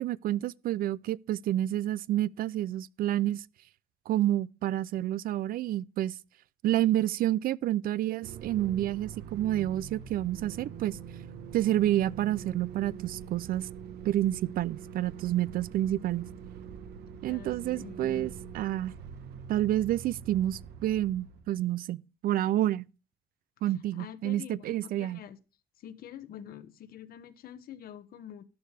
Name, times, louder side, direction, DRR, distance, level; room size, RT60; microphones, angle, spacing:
voice 1, 0.0-3.4 4.1-6.2 6.6-11.0 11.5-13.7 14.0-16.3 17.2-18.9 19.5-22.9 23.6-25.2, right 13 dB, 60° right, 0.4 m, -29 dB
sound 1, 8.2-21.6, right 8 dB, 75° right, 1.3 m, -44 dB
voice 2, 17.3-18.3 23.6-25.4 25.8-28.4, left 9 dB, 60° left, 1.2 m, -46 dB
13.0 x 10.0 x 3.3 m
cardioid pair, 110°, 17 cm